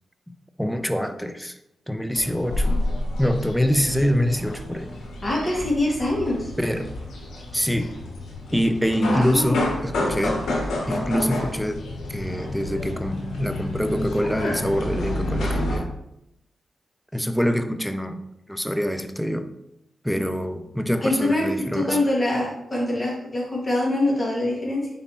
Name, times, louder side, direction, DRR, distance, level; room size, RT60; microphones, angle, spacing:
voice 1, 0.6-1.6 1.9-2.8 3.2-4.9 6.6-6.9 7.5-7.9 8.5-10.4 10.9-15.9 17.1-18.2 18.5-19.5 20.0-21.9, equal, 5° left, 8 dB, 0.5 m, -25 dB
sound 1, 2.1-15.8, left 1 dB, 80° left, 1.0 m, -29 dB
voice 2, 5.2-6.5 8.9-9.6 21.0-24.9, left 1 dB, 25° left, -3 dB, 1.7 m, -24 dB
4.4 x 4.0 x 2.9 m, 0.84 s
cardioid pair, 55°, 0 cm